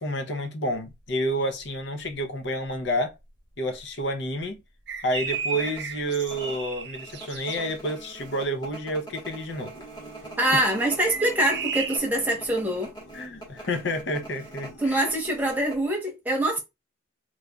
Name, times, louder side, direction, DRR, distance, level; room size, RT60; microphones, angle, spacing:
voice 1, 0.0-3.2 3.6-4.6 5.0-9.7 13.1-15.0, equal, 65° left, 0.6 m, -29 dB
sound 1, 0.8-1.1 1.6-1.7 2.0-2.9 3.3-3.4 3.8-4.0 4.4-4.5 5.1-15.9, right 2 dB, 20° left, 1.2 m, -43 dB
sound 2, 4.9-7.6 10.9-12.0, right 6 dB, 60° right, 0.6 m, -34 dB
sound 3, 9.7-15.6, right 1 dB, 90° left, 0.9 m, -47 dB
voice 2, 10.4-12.9 14.8-16.6, right 1 dB, 10° right, 1.0 m, -24 dB
3.7 x 3.1 x 2.3 m
head